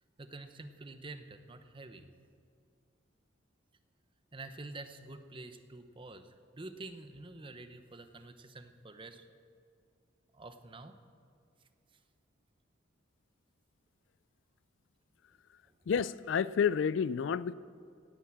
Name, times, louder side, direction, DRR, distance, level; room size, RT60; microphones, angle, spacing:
voice 1, 0.2-2.1 4.3-9.2 10.3-11.0 15.7-15.8, right 2 dB, 25° right, 9 dB, 0.8 m, -48 dB
voice 2, 15.9-17.5, left 7 dB, 65° left, 18 dB, 0.3 m, -30 dB
17.5 x 9.1 x 7.5 m, 2.3 s
head